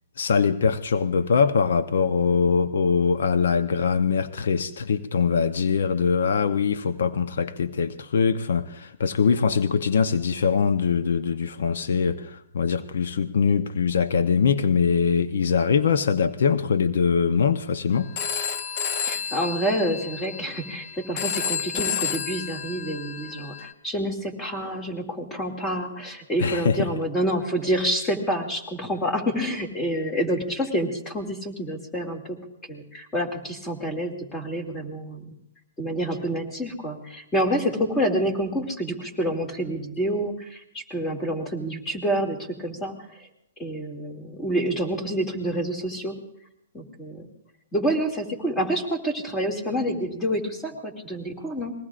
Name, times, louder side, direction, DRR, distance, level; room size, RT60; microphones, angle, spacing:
voice 1, 0.2-18.1 26.4-26.9, left 6 dB, 75° left, 0.8 m, -22 dB
Telephone, 18.2-23.7, left 7 dB, 40° left, 0.9 m, -31 dB
voice 2, 19.1-32.2 32.7-35.3 35.8-43.3 43.6-46.2 46.7-47.3 47.7-51.7, equal, 15° left, 2.4 m, -28 dB
27.5 x 21.0 x 2.5 m
hypercardioid pair, 150°, 0 cm